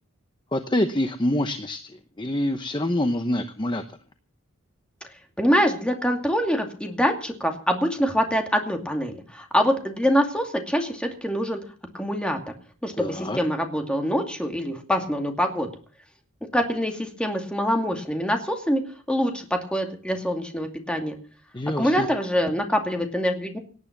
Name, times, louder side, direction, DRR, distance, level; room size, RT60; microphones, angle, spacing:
voice 1, 0.5-3.8 13.0-13.4 21.5-22.1, left 1 dB, 20° left, 8 dB, 0.9 m, -26 dB
voice 2, 5.4-11.6 11.9-12.4 12.8-15.7 16.5-18.8 19.1-21.1 21.8-23.6, equal, 5° left, 4 dB, 2.4 m, -24 dB
18.5 x 9.8 x 6.0 m, 0.42 s
head